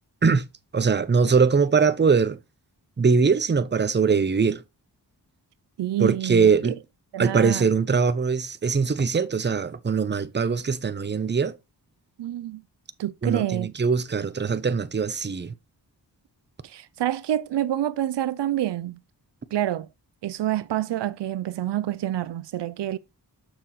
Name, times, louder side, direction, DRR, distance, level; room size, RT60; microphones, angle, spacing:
voice 1, 0.7-2.4 3.0-4.6 6.0-6.8 7.2-11.6 13.2-15.5, right 5 dB, 25° right, 0.7 m, -22 dB
voice 2, 5.8-6.8 7.1-7.7 12.2-12.6 13.0-13.7 16.6-19.0 19.5-19.9 20.2-23.0, right 12 dB, 85° right, 0.5 m, -27 dB
6.6 x 6.0 x 3.0 m
wide cardioid pair, 70°, 41 cm